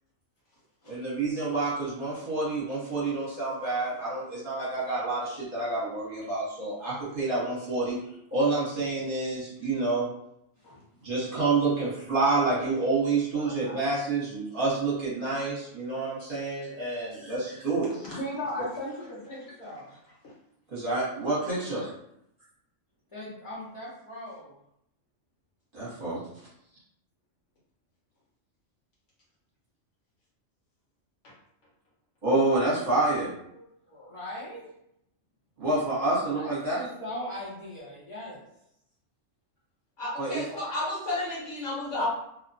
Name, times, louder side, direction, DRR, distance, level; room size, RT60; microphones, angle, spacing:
voice 1, 0.9-8.0 8.3-10.1 11.0-17.9 20.7-21.9 25.7-26.2 32.2-33.3 35.6-36.9 40.2-40.5, right 3 dB, 45° right, -7 dB, 1.0 m, -28 dB
voice 2, 13.3-13.8 17.1-17.4 18.0-19.9 23.1-24.5 33.5-34.7 36.3-38.4, left 1 dB, 35° left, -9 dB, 0.6 m, -39 dB
voice 3, 40.0-42.1, left 2 dB, 70° left, -6 dB, 1.3 m, -32 dB
2.8 x 2.0 x 2.6 m, 0.77 s
omnidirectional pair, 1.3 m